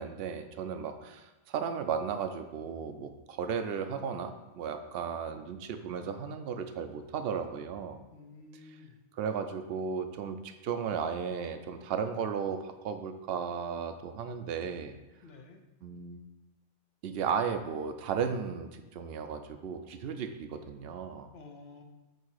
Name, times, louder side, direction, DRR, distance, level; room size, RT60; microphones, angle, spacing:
voice 1, 0.0-8.0 8.6-8.8 9.1-15.0 15.8-16.2 17.0-21.3, right 6 dB, 70° right, 8 dB, 0.8 m, -35 dB
voice 2, 8.1-9.0 15.2-15.6 21.3-21.8, left 3 dB, 70° left, 4 dB, 1.0 m, -51 dB
7.7 x 2.8 x 4.8 m, 1.1 s
omnidirectional pair, 1.1 m